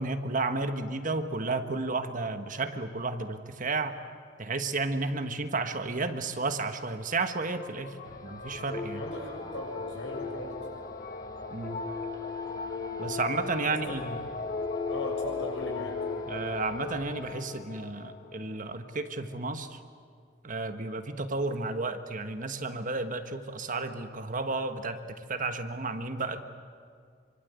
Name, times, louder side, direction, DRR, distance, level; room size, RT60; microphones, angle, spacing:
voice 1, 0.0-4.0 4.4-8.0 8.2-9.0 11.5-11.8 13.0-14.1 16.3-19.8 20.4-25.0 25.3-26.4, right 3 dB, 45° right, 8 dB, 1.4 m, -32 dB
sound 1, 7.6-19.4, left 3 dB, 45° left, 1.3 m, -38 dB
sound 2, 8.0-17.3, left 5 dB, 20° left, 1.2 m, -42 dB
voice 2, 8.9-10.5 13.7-14.0 14.9-16.0, left 1 dB, 80° left, 0 dB, 7.3 m, -37 dB
26.0 x 24.5 x 8.2 m, 2.1 s
head